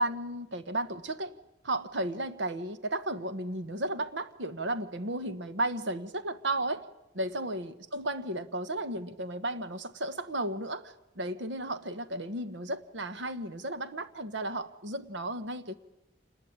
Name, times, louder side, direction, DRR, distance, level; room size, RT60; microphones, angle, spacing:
voice 1, 0.0-1.3 1.6-6.8 7.1-15.7, right 1 dB, 80° right, 12 dB, 1.3 m, -34 dB
26.5 x 20.0 x 8.9 m, 0.91 s
head